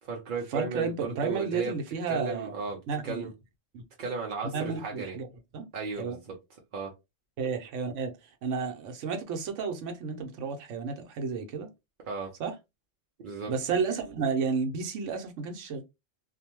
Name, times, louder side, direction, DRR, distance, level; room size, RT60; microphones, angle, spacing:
voice 1, 0.0-1.7 2.1-3.3 4.0-5.2 5.7-6.4 6.7-6.9 12.1-12.3 13.2-13.5, right 4 dB, 55° right, 0.6 m, -35 dB
voice 2, 0.5-2.5 2.9-3.3 3.7-3.8 4.5-5.3 5.5-5.7 6.0-6.2 7.4-8.1 8.4-11.7 12.4-12.5 13.5-15.8, right 5 dB, 70° right, 1.0 m, -32 dB
2.6 x 2.1 x 2.9 m
omnidirectional pair, 1.3 m